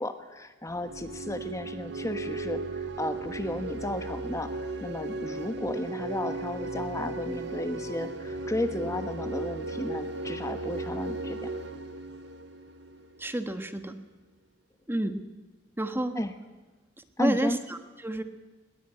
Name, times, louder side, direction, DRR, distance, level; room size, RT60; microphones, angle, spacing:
voice 1, 0.0-11.5 16.1-16.3 17.2-17.6, left 1 dB, 15° left, 8 dB, 1.2 m, -33 dB
sound 1, 0.7-13.3, right 2 dB, 65° right, 2.1 m, -36 dB
voice 2, 13.2-13.9 14.9-15.1 15.8-16.1 17.2-18.2, right 1 dB, 10° right, 8 dB, 1.4 m, -30 dB
20.5 x 19.5 x 9.1 m, 1.2 s
head